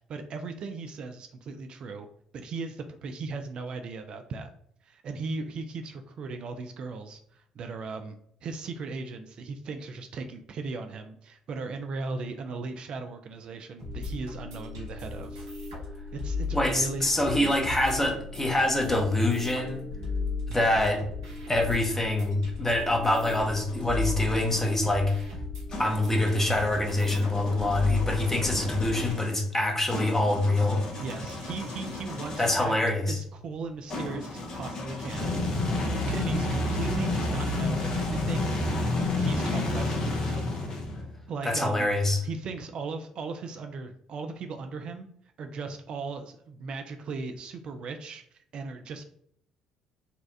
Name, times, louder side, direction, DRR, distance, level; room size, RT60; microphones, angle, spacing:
voice 1, 0.0-2.1 2.3-4.5 4.8-15.4 16.1-17.7 31.0-32.8 33.1-35.7 36.1-38.5 39.2-40.4 41.3-41.9 42.2-45.1 45.4-49.0, right 4 dB, 50° right, 6 dB, 0.4 m, -37 dB
sound 1, 13.8-29.1, left 3 dB, 80° right, 1.0 m, -36 dB
voice 2, 16.5-19.8 20.5-21.0 21.5-25.3 25.8-30.8 32.4-33.2 41.4-42.2, left 1 dB, 15° left, 1 dB, 0.9 m, -25 dB
sound 2, 23.2-24.8 25.7-32.7 33.9-41.2, left 2 dB, 40° left, 0.9 m, -32 dB
4.1 x 2.3 x 2.6 m, 0.66 s
figure-of-eight pair, 50°, 2 cm